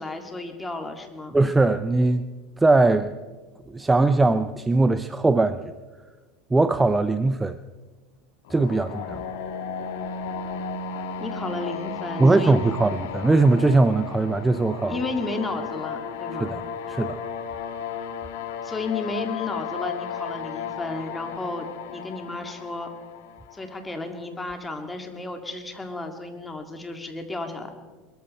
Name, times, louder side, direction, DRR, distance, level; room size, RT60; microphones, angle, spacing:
voice 1, 0.0-1.4 11.2-12.7 14.8-16.5 18.6-22.9 23.5-27.7, left 2 dB, 15° left, 5 dB, 2.1 m, -33 dB
voice 2, 1.3-2.3 2.6-3.1 3.7-5.6 6.5-7.6 8.5-9.2 12.2-15.0 16.4-16.6 16.9-17.2, right 2 dB, 10° right, 12 dB, 0.5 m, -20 dB
sound 1, 8.5-24.3, left 6 dB, 80° left, 1.5 m, -34 dB
21.5 x 14.0 x 4.3 m, 1.3 s
supercardioid pair, 110°, 0 cm